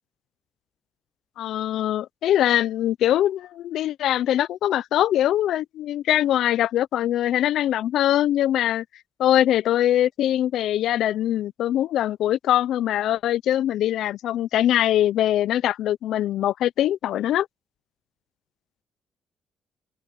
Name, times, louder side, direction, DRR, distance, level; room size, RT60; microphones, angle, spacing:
voice 1, 1.4-8.8 9.2-17.5, left 12 dB, 80° left, 0.4 m, -22 dB
open air
cardioid pair, 90°, 0 cm